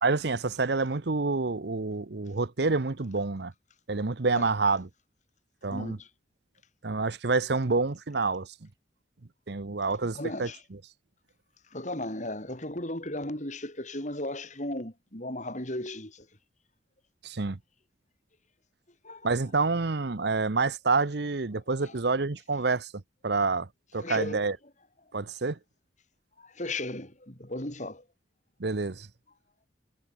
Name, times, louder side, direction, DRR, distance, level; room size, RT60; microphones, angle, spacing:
voice 1, 0.0-3.5 3.9-4.9 5.6-6.0 6.8-8.5 9.5-10.5 17.2-17.6 19.2-24.6 25.1-25.6 28.6-29.1, right 3 dB, 60° right, 0.9 m, -28 dB
voice 2, 5.7-6.1 10.1-10.6 11.7-16.3 19.0-19.3 21.8-21.9 24.0-24.5 26.4-28.0, left 1 dB, 40° left, 6.0 m, -36 dB
head